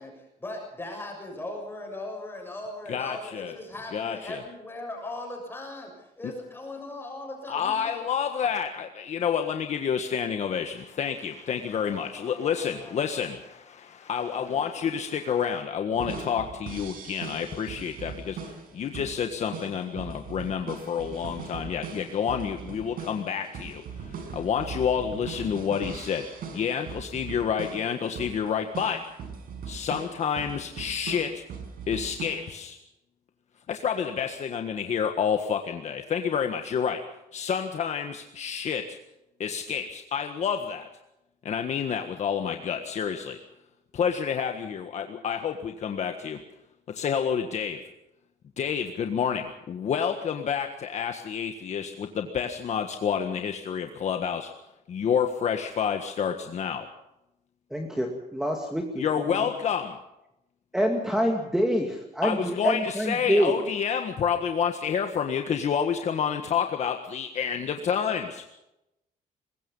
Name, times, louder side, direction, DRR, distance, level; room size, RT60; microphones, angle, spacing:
voice 1, 0.0-8.1 11.7-13.3 14.1-14.7, left 2 dB, 15° left, 0 dB, 6.7 m, -39 dB
voice 2, 2.9-3.5 3.9-4.4 7.5-18.4 18.7-26.3 26.5-29.0 29.7-31.4 31.9-32.8 33.7-37.0 37.3-39.0 39.4-40.9 41.4-43.4 43.9-46.4 46.9-47.8 48.6-54.5 54.9-56.9 59.0-60.0 62.2-68.4, left 7 dB, 50° left, 5 dB, 1.5 m, -29 dB
sound 1, 15.9-32.6, right 6 dB, 70° right, 5.5 m, -40 dB
voice 3, 57.7-59.5 60.7-63.5, equal, 5° right, 2 dB, 2.3 m, -26 dB
23.0 x 21.0 x 5.5 m, 0.88 s
cardioid pair, 155°, 15 cm